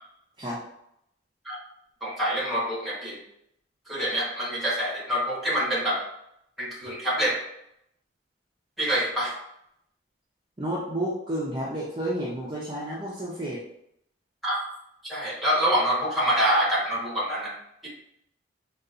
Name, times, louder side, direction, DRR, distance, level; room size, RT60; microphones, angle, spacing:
voice 1, 2.0-3.2 3.9-6.0 6.6-7.4 8.8-9.3 14.4-14.6 15.1-17.5, equal, ahead, -6 dB, 1.0 m, -26 dB
voice 2, 10.6-13.6, right 1 dB, 25° right, -6 dB, 0.5 m, -31 dB
3.8 x 2.3 x 2.4 m, 0.76 s
head